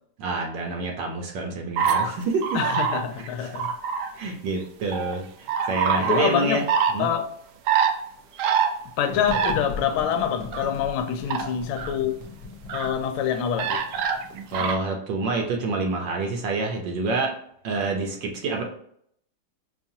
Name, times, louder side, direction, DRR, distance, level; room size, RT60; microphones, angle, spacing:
voice 1, 0.2-2.6 3.4-3.5 4.2-6.6 6.9-7.1 14.5-17.3 17.6-18.6, right 3 dB, 70° right, 1.3 m, -27 dB
sound 1, 1.8-2.1 2.4-3.1 3.5-4.1 4.9-5.2 5.5-6.3 6.7-6.9 7.7-7.9 8.4-8.7 9.3-9.5 10.2-10.7 11.3-11.5 11.8-11.9 12.7-12.9 13.6-14.8, right 7 dB, 85° right, 0.9 m, -24 dB
voice 2, 2.5-3.7 6.0-6.6 7.0-7.3 9.0-12.2 12.7-13.8, left 8 dB, 85° left, 1.4 m, -26 dB
sound 2, 9.1-14.6, left 4 dB, 55° left, 1.3 m, -39 dB
5.5 x 2.4 x 2.7 m
omnidirectional pair, 2.3 m